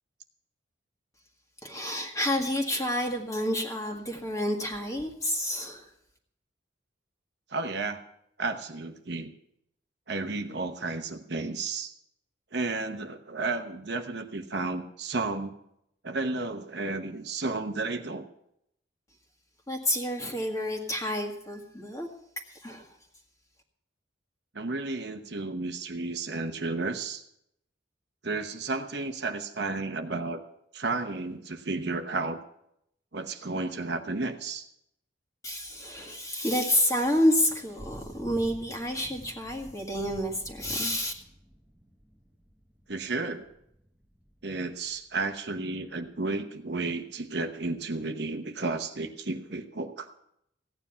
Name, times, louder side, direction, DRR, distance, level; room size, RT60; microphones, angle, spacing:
voice 1, 1.6-5.9 19.7-22.1 22.5-23.0 35.4-41.1, left 1 dB, 15° left, 2 dB, 1.7 m, -29 dB
voice 2, 7.5-8.0 8.4-9.3 10.1-11.9 12.5-15.5 16.0-18.2 24.5-27.2 28.2-30.4 30.7-32.4 33.1-34.7 42.9-43.5 44.4-50.1, right 3 dB, 55° right, 6 dB, 1.0 m, -32 dB
Thunder / Rain, 36.8-46.4, equal, 5° right, 1.1 m, -50 dB
16.0 x 9.7 x 5.7 m, 0.74 s
head